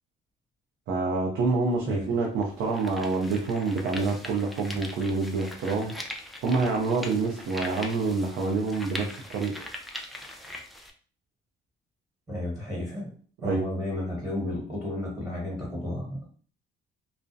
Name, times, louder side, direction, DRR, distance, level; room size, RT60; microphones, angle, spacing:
voice 1, 0.9-5.9 6.4-9.6 13.4-13.7, right 3 dB, 85° right, -1 dB, 0.5 m, -27 dB
sound 1, 1.7-1.8 2.4-10.9, left 1 dB, ahead, 0.4 m, -41 dB
voice 2, 12.3-13.1 13.4-16.3, left 1 dB, 15° right, -4 dB, 1.3 m, -32 dB
2.4 x 2.0 x 2.5 m, 0.43 s
cardioid pair, 90°, 20 cm